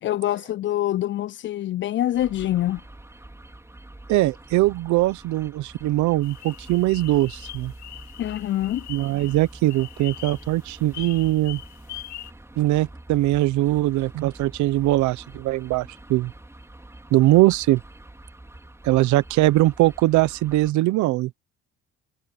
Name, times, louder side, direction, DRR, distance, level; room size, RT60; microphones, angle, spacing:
voice 1, 0.0-2.8 8.2-8.9, left 13 dB, 40° left, 0.4 m, -25 dB
sound 1, 2.1-20.7, right 1 dB, 10° right, 3.9 m, -45 dB
voice 2, 4.1-7.7 8.9-11.6 12.6-16.3 17.1-17.8 18.8-21.4, right 17 dB, 75° right, 1.0 m, -21 dB
sound 2, 6.2-12.3, left 14 dB, 75° left, 1.9 m, -42 dB
supercardioid pair, 80°, 29 cm